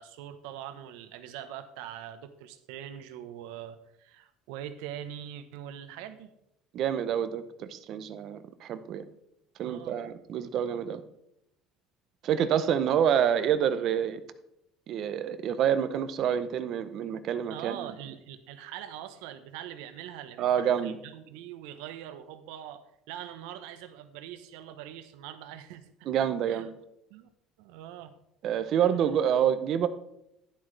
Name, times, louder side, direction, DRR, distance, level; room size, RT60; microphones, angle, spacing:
voice 1, 0.0-6.3 9.6-10.0 17.5-25.9 26.5-26.7 27.1-27.3 27.6-28.2, right 10 dB, 85° right, 11 dB, 0.9 m, -43 dB
voice 2, 6.7-9.0 9.6-11.0 12.2-14.2 14.9-17.9 20.4-20.9 26.1-26.7 28.4-29.9, right 9 dB, 40° right, 11 dB, 0.6 m, -27 dB
11.5 x 10.5 x 3.3 m, 0.82 s
cardioid pair, 170°, 0 cm